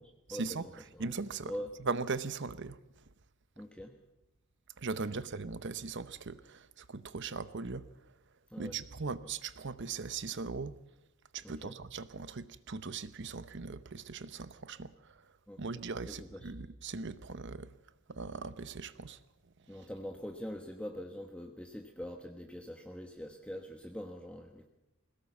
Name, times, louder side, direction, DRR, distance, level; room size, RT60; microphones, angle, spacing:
voice 1, 0.3-0.6 1.0-1.5 1.8-2.8 4.8-7.9 8.6-10.8 11.3-15.3 15.6-17.7 18.1-19.2, right 4 dB, 55° right, 0.8 m, -39 dB
voice 2, 3.6-3.9 5.1-5.2 8.5-8.8 9.1-9.2 11.4-11.8 15.5-16.5 19.7-24.7, equal, 5° left, 1.2 m, -44 dB
21.0 x 17.5 x 7.2 m
head